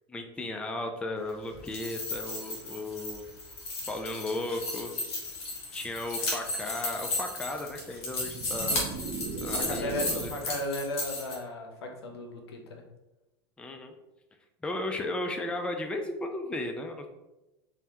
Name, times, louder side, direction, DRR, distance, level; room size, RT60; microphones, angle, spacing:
voice 1, 0.1-3.3 3.9-4.9 5.7-8.9 9.4-10.3 13.6-13.9 14.6-17.1, left 2 dB, 10° left, 4 dB, 0.3 m, -35 dB
sound 1, 1.5-11.3, left 2 dB, 55° left, 1.2 m, -35 dB
sound 2, 8.0-10.6, right 4 dB, 55° right, 0.5 m, -38 dB
voice 2, 9.5-12.8, left 1 dB, 85° left, 3 dB, 0.6 m, -35 dB
3.2 x 2.2 x 2.9 m, 1.0 s
hypercardioid pair, 100°, 13 cm